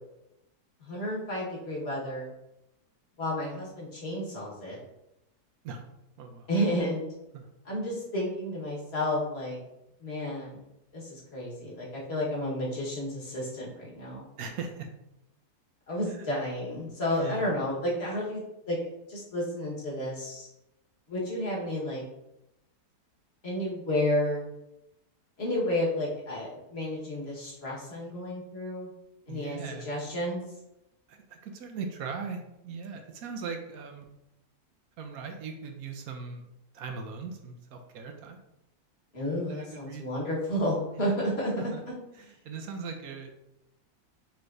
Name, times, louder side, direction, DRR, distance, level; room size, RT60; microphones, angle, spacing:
voice 1, 0.8-2.3 3.2-4.8 6.5-7.0 7.6-9.6 10.0-10.6 10.9-14.3 15.9-18.4 18.7-18.8 19.1-20.5 21.1-22.0 23.4-24.4 25.4-28.9 29.3-30.4 39.1-41.5 41.9-42.0, left 1 dB, 40° left, -4 dB, 1.6 m, -31 dB
voice 2, 6.2-6.5 7.3-7.5 14.4-14.9 16.1-16.3 17.1-17.5 29.3-29.9 31.1-34.1 35.0-36.4 36.7-38.4 39.5-40.1 41.0-41.2 41.6-41.8 42.2-43.3, right 5 dB, 70° right, 4 dB, 1.0 m, -39 dB
5.7 x 3.2 x 2.6 m, 0.87 s
omnidirectional pair, 1.7 m